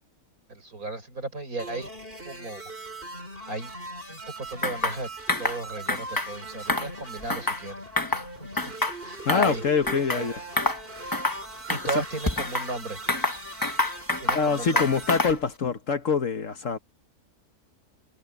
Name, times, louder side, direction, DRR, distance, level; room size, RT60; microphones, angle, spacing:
voice 1, 0.5-1.9 2.2-2.6 3.5-3.7 4.1-5.1 5.4-8.5 9.0-9.6 10.1-10.3 11.7-13.0 14.2-14.9, right 2 dB, 65° right, 6.5 m, -35 dB
sound 1, 1.6-15.2, right 1 dB, 35° right, 6.0 m, -40 dB
sound 2, 4.6-5.0 5.3-5.6 5.9-6.3 6.6-7.6 8.0-8.3 8.6-9.6 9.9-10.2 10.6-10.8 11.1-11.4 11.7-12.7 13.1-14.5 14.8-15.4, left 2 dB, 15° left, 1.0 m, -27 dB
voice 2, 9.2-10.4 11.9-12.0 14.3-16.8, left 5 dB, 55° left, 1.5 m, -25 dB
omnidirectional pair, 1.6 m